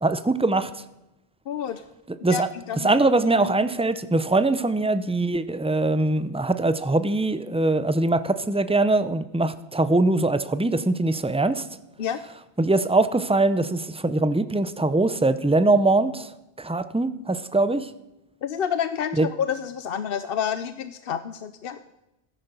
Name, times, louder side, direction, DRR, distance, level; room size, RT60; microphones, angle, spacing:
voice 1, 0.0-0.7 2.2-2.5 2.8-11.6 12.6-16.3 16.6-17.9 19.2-19.3, right 2 dB, 10° right, 13 dB, 0.3 m, -22 dB
voice 2, 1.5-1.8 2.3-2.4 2.7-3.0 12.0-12.2 18.4-21.8, left 8 dB, 60° left, 11 dB, 0.8 m, -28 dB
14.0 x 10.0 x 6.8 m, 0.93 s
omnidirectional pair, 1.1 m